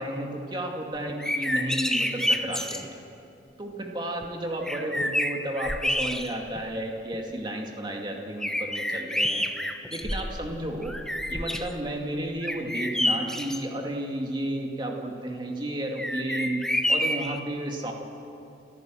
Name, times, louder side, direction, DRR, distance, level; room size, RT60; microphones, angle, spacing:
voice 1, 0.0-2.9 3.6-9.5 9.9-11.0 11.3-17.9, right 1 dB, 25° right, 1 dB, 2.3 m, -32 dB
sound 1, 1.1-2.8 4.2-4.3 4.7-6.6 7.1-7.2 8.4-10.5 10.8-11.7 12.4-13.6 16.0-17.4, left 1 dB, 5° left, 0.9 m, -28 dB
28.5 x 15.0 x 7.7 m, 2.7 s
head